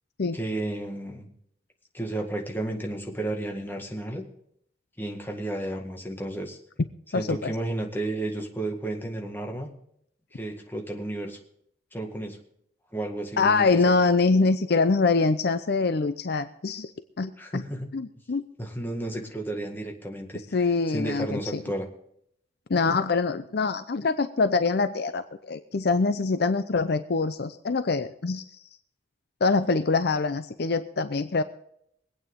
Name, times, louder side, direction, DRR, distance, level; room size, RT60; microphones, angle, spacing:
voice 1, 0.3-1.3 1.9-4.2 5.0-6.6 7.1-9.7 10.3-11.4 11.9-12.4 12.9-14.0 17.4-17.9 18.6-20.6 20.9-21.9, right 1 dB, 10° left, 2 dB, 1.9 m, -32 dB
voice 2, 7.1-7.5 13.4-16.9 17.2-17.6 17.9-18.4 20.5-21.6 22.7-28.4 29.4-31.4, left 4 dB, 60° left, 11 dB, 0.6 m, -24 dB
23.0 x 9.0 x 3.7 m, 0.71 s
head